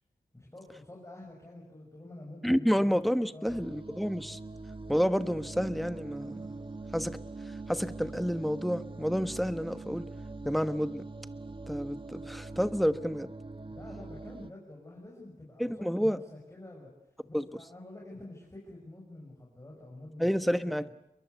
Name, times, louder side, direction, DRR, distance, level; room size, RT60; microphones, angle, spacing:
voice 1, 0.3-2.9 3.3-3.8 13.7-16.9 17.2-20.7, left 1 dB, 20° left, -2 dB, 6.8 m, -48 dB
voice 2, 2.4-4.4 4.9-6.6 6.9-7.2 7.7-10.1 10.4-11.1 11.7-13.3 15.6-16.2 17.3-17.4 20.2-20.9, equal, ahead, 11 dB, 1.2 m, -29 dB
sound 1, 3.5-14.5, right 3 dB, 35° right, 1.3 m, -43 dB
29.0 x 22.5 x 8.2 m, 0.80 s
wide cardioid pair, 80°, 15 cm